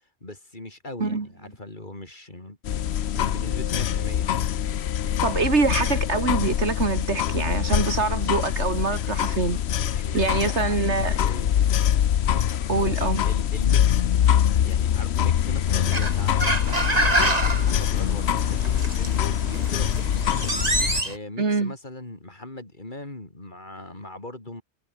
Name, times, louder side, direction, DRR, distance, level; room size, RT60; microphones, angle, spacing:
voice 1, 0.2-2.6 3.1-4.3 9.2-9.4 9.9-11.7 12.3-14.1 14.6-20.1 21.0-24.6, left 2 dB, 45° left, 4.0 m, -39 dB
sound 1, 2.6-21.0, left 10 dB, 70° left, 1.0 m, -24 dB
voice 2, 5.2-9.6 9.9-11.2 12.7-13.2 21.4-21.7, right 4 dB, 75° right, 2.7 m, -25 dB
sound 2, 15.7-21.2, right 2 dB, 35° right, 3.7 m, -27 dB
omnidirectional pair, 1.2 m